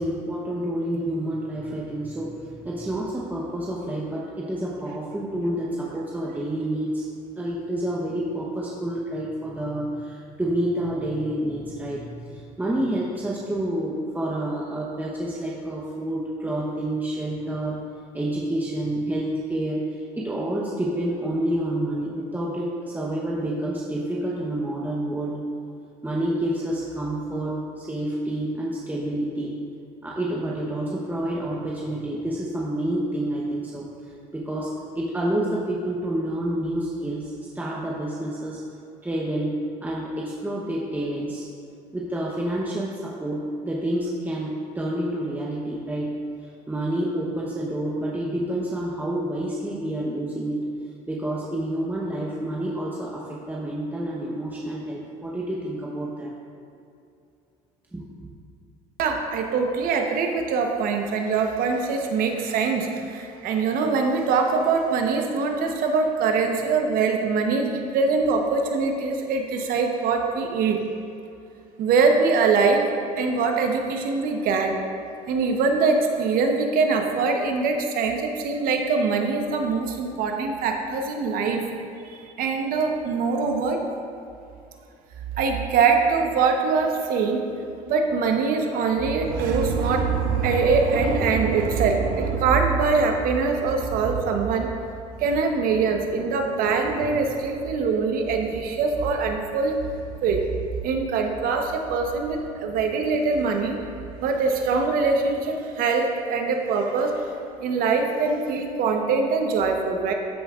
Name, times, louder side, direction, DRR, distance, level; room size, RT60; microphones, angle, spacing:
voice 1, 0.0-7.1 7.4-17.8 18.1-25.4 26.0-29.6 30.0-33.9 34.3-38.6 39.0-41.5 41.9-50.7 51.1-56.3 57.9-58.3, right 1 dB, 10° right, -4 dB, 1.0 m, -28 dB
voice 2, 59.0-70.8 71.8-72.8 73.2-74.8 75.3-81.6 82.0-83.8 85.4-87.5 87.9-94.7 95.2-99.8 100.2-100.4 100.8-103.8 104.2-107.1 107.6-110.1, right 4 dB, 65° right, 3 dB, 1.0 m, -23 dB
13.0 x 5.3 x 2.5 m, 2.6 s
supercardioid pair, 80°, 16 cm